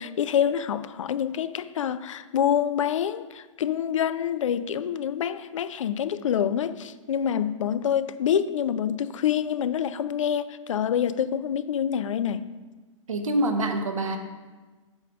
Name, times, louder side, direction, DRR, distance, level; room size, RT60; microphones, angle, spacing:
voice 1, 0.0-12.5, left 9 dB, 70° left, 14 dB, 0.4 m, -26 dB
voice 2, 13.1-14.2, right 1 dB, 80° right, 6 dB, 0.9 m, -25 dB
8.2 x 3.4 x 6.0 m, 1.3 s
figure-of-eight pair, 110°, 17 cm